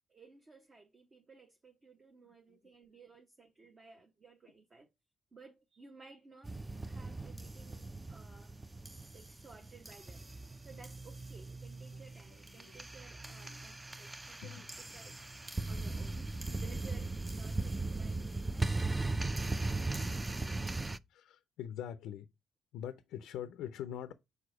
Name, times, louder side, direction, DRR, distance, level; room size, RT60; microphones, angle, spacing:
voice 1, 0.1-4.9 5.3-8.5 8.8-10.3 10.6-15.2 15.7-19.2, right 4 dB, 35° right, 0.9 m, -57 dB
sound 1, 6.4-21.0, right 2 dB, 15° right, 0.3 m, -38 dB
voice 2, 13.2-13.6 14.4-14.5 21.1-22.2 22.7-24.1, left 10 dB, 90° left, 0.4 m, -43 dB
4.8 x 4.1 x 4.8 m
cardioid pair, 90°, 0 cm